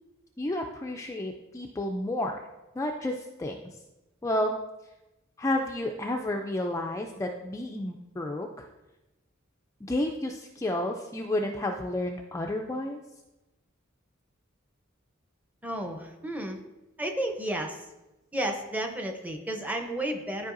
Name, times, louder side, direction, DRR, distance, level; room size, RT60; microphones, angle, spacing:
voice 1, 0.4-2.4 2.7-3.7 4.2-4.6 5.4-8.7 9.8-13.0, left 1 dB, 15° left, 2 dB, 0.4 m, -31 dB
voice 2, 15.6-16.6 17.0-17.9 18.3-20.5, right 1 dB, 10° right, 3 dB, 0.7 m, -32 dB
12.0 x 4.7 x 2.6 m, 1.0 s
head